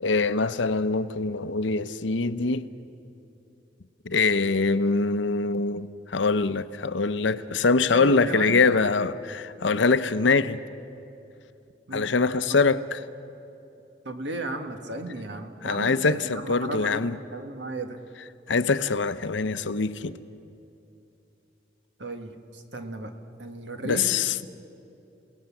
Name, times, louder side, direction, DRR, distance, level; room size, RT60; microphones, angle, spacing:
voice 1, 0.0-2.7 4.1-10.6 11.9-13.0 15.6-17.2 18.5-20.1 23.8-24.3, left 4 dB, 80° left, 0.8 m, -24 dB
voice 2, 7.9-8.8 11.9-12.1 14.0-18.0 22.0-23.1 23.4-24.1, right 2 dB, 70° right, 1.7 m, -35 dB
29.0 x 18.0 x 7.2 m
head